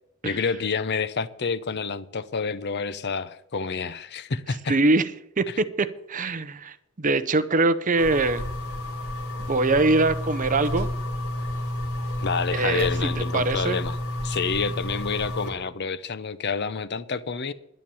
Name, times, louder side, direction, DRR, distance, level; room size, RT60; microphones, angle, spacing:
voice 1, 0.2-4.8 12.2-14.0 14.2-17.5, left 5 dB, 50° left, 0.6 m, -28 dB
voice 2, 4.7-5.1 5.4-8.4 9.5-10.9 12.5-13.8, right 3 dB, 35° right, 0.7 m, -23 dB
sound 1, 8.0-15.5, left 1 dB, 80° left, 3.0 m, -30 dB
11.0 x 10.5 x 7.0 m
head